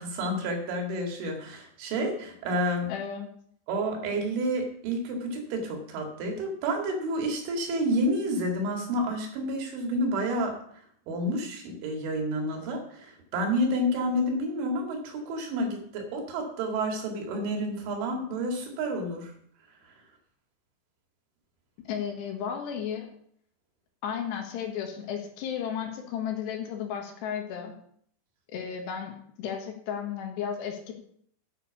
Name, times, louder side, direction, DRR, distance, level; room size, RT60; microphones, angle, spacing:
voice 1, 0.0-2.9 3.7-10.5 11.1-19.3, equal, 80° right, 2 dB, 4.6 m, -29 dB
voice 2, 2.9-3.3 21.9-23.1 24.0-27.7 28.5-30.9, left 8 dB, 70° left, 3 dB, 3.4 m, -34 dB
9.0 x 8.3 x 7.1 m, 0.64 s
omnidirectional pair, 5.4 m